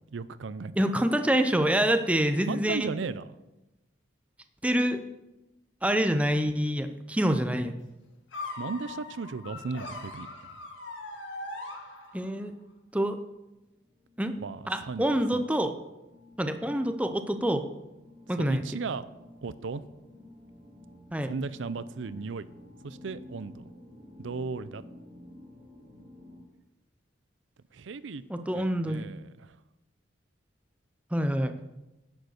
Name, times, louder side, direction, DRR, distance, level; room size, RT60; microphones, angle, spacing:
voice 1, 0.0-0.7 2.5-3.3 8.6-10.3 14.4-15.1 15.3-15.4 18.4-19.1 19.4-19.8 21.2-22.5 22.8-23.7 24.2-24.8 27.7-28.2 28.5-29.6, right 4 dB, 75° right, 15 dB, 0.5 m, -36 dB
voice 2, 0.8-2.9 4.6-5.0 5.8-7.7 12.1-12.5 12.9-13.2 14.2-14.3 14.7-15.8 16.4-17.6 18.3-18.6 21.1-21.3 28.3-29.1 31.1-31.6, equal, 5° right, 8 dB, 0.6 m, -26 dB
sound 1, 8.3-12.5, left 2 dB, 75° left, 1.7 m, -40 dB
sound 2, 13.5-26.4, left 1 dB, 35° right, 2.4 m, -52 dB
10.5 x 7.9 x 6.5 m, 0.98 s
head